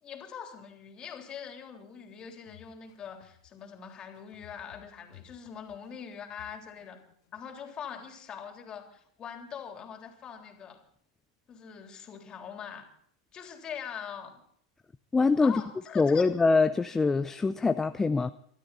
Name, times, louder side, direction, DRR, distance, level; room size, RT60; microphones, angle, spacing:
voice 1, 0.0-7.0 7.3-10.8 11.5-12.9 13.3-14.4 15.4-16.3, left 7 dB, 35° left, 4 dB, 3.5 m, -43 dB
sound 1, 2.0-7.4, left 12 dB, 65° left, 1.8 m, -57 dB
voice 2, 15.1-15.6 16.0-18.3, left 4 dB, 15° left, 10 dB, 0.6 m, -24 dB
24.0 x 13.0 x 4.2 m, 0.64 s
hypercardioid pair, 95°, 3 cm